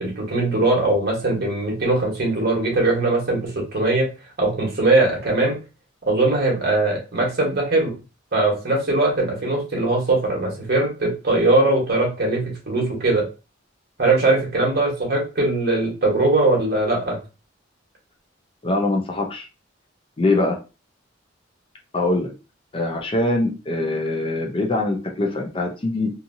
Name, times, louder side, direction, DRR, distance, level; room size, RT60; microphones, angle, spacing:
voice 1, 0.0-4.1 4.4-5.5 6.0-7.9 8.3-13.2 14.0-17.2, right 2 dB, 55° right, -1 dB, 1.2 m, -20 dB
voice 2, 18.6-19.5 20.2-20.6 21.9-22.3 22.7-26.1, left 2 dB, 25° left, 1 dB, 0.5 m, -23 dB
2.7 x 2.7 x 2.6 m, 0.31 s
head